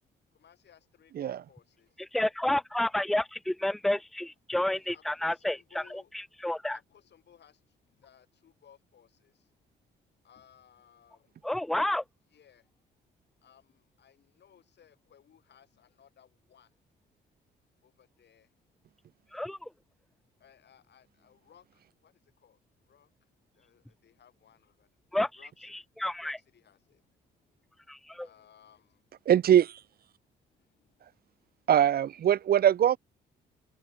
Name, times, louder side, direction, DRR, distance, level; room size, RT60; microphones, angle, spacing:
voice 1, 0.3-2.1 4.9-6.1 6.4-9.5 10.2-11.5 12.3-12.7 13.4-16.7 17.8-18.7 20.4-25.0 25.4-25.9 26.2-27.7 28.2-29.1 30.6-31.5, left 9 dB, 60° left, 7.8 m, -61 dB
voice 2, 2.1-6.8 11.4-12.0 19.3-19.7 25.1-25.3 26.0-26.4 27.9-28.3, left 1 dB, ahead, 0.8 m, -30 dB
voice 3, 29.3-29.8 31.7-33.0, right 10 dB, 50° right, 0.6 m, -22 dB
cardioid pair, 90°, 20 cm